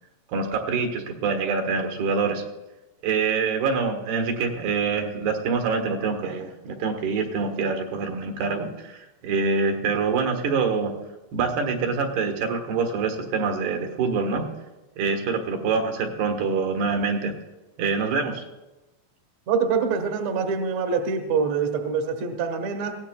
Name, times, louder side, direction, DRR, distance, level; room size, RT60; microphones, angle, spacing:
voice 1, 0.3-2.4 3.0-10.9 11.3-14.5 15.0-17.3 17.8-18.5, right 5 dB, 75° right, 4 dB, 3.3 m, -25 dB
voice 2, 19.5-23.0, right 5 dB, 60° right, 5 dB, 2.0 m, -25 dB
21.5 x 16.5 x 2.3 m, 1.1 s
omnidirectional pair, 4.8 m